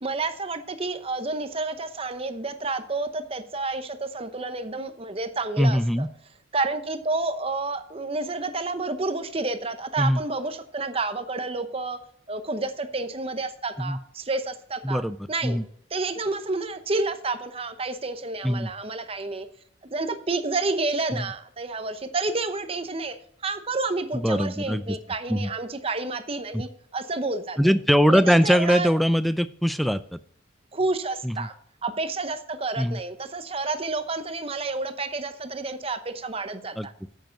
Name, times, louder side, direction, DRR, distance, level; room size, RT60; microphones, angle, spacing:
voice 1, 0.0-6.1 6.5-12.0 12.3-15.0 15.3-15.6 15.9-19.5 19.9-23.2 23.4-27.8 28.1-28.9 30.7-31.5 31.8-36.9, right 3 dB, 30° right, 9 dB, 0.8 m, -30 dB
voice 2, 5.6-6.1 10.0-10.2 13.8-14.0 14.8-15.2 15.4-15.6 18.4-18.7 21.1-21.2 24.1-24.8 25.3-25.5 26.5-26.6 27.6-30.2 31.2-31.5 32.8-33.0 36.8-36.9, equal, ahead, 13 dB, 0.4 m, -22 dB
9.0 x 8.0 x 5.2 m, 0.63 s
head